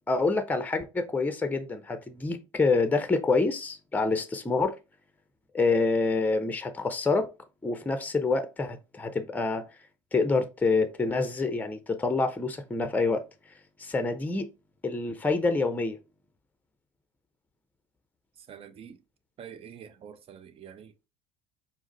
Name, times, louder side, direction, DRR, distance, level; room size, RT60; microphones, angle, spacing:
voice 1, 0.1-4.7 5.5-7.3 7.6-9.6 10.1-13.5 13.8-14.5 14.8-16.0, left 3 dB, 10° left, 0.6 m, -27 dB
voice 2, 18.5-19.0 19.4-20.9, right 8 dB, 40° right, 0.6 m, -46 dB
4.7 x 2.0 x 3.9 m
hypercardioid pair, 70°, 16 cm